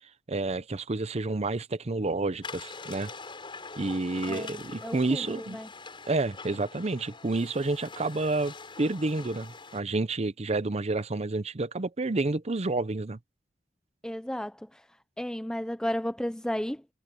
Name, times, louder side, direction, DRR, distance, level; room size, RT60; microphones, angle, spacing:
voice 1, 0.3-3.1 3.8-5.6 6.1-13.2, right 2 dB, 35° right, 0.7 m, -29 dB
sound 1, 2.4-9.8, left 4 dB, 30° left, 7.9 m, -44 dB
voice 2, 4.3-5.7 14.0-14.9 15.2-16.9, equal, 5° left, 0.5 m, -34 dB
head